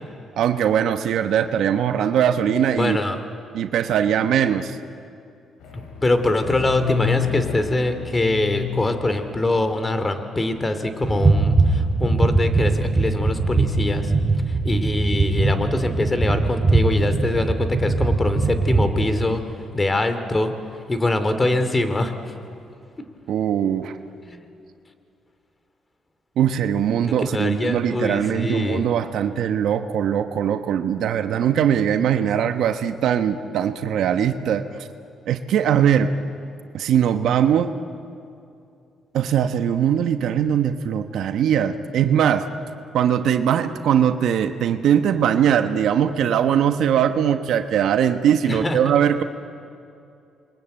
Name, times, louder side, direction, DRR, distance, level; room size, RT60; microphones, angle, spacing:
voice 1, 0.4-3.0 3.5-4.8 23.3-24.0 26.4-34.6 35.3-36.1 36.7-37.7 39.1-42.4 42.9-49.2, right 9 dB, 75° right, 8 dB, 1.1 m, -21 dB
voice 2, 2.8-3.2 6.0-14.1 14.5-19.4 19.7-20.5 20.9-22.2 24.3-24.4 27.0-28.9 48.5-48.9, left 2 dB, 25° left, 9 dB, 2.6 m, -23 dB
sound 1, 5.6-10.6, left 8 dB, 85° left, 5.7 m, -30 dB
sound 2, 11.0-19.1, right 3 dB, 20° right, 3.9 m, -21 dB
28.5 x 22.5 x 9.0 m, 2.6 s
cardioid pair, 90°, 0 cm